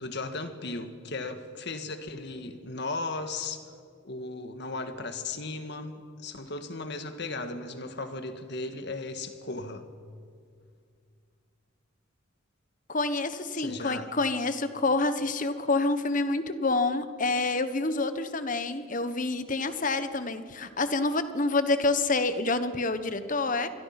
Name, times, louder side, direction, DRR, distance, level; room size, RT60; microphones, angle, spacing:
voice 1, 0.0-3.7 4.0-5.9 6.2-9.8 13.5-14.1, left 3 dB, 60° left, 8 dB, 1.8 m, -36 dB
voice 2, 12.9-23.7, left 3 dB, 40° left, 11 dB, 1.3 m, -27 dB
27.0 x 22.5 x 6.0 m, 2.2 s
head